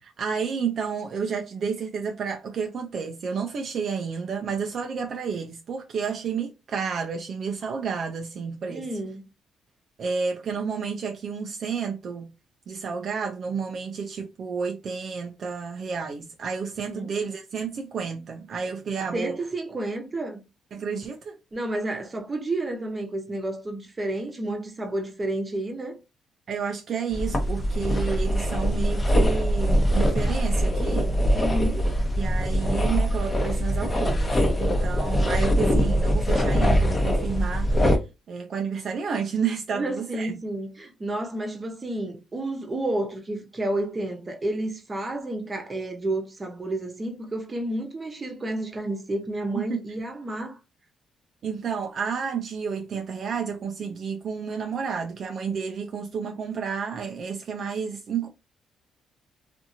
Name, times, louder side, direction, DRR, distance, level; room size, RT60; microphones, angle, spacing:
voice 1, 0.0-8.9 10.0-12.3 12.7-19.4 20.7-21.4 26.5-31.2 32.2-37.7 38.3-40.3 49.5-49.8 51.4-58.3, right 6 dB, 55° right, 0.4 m, -31 dB
voice 2, 8.7-9.3 16.8-17.1 19.1-20.4 21.5-26.0 31.3-31.9 39.7-50.6, right 1 dB, 25° right, 0.9 m, -30 dB
sound 1, 27.1-38.0, equal, 20° left, 0.8 m, -23 dB
2.7 x 2.5 x 2.6 m
cardioid pair, 90°, 0 cm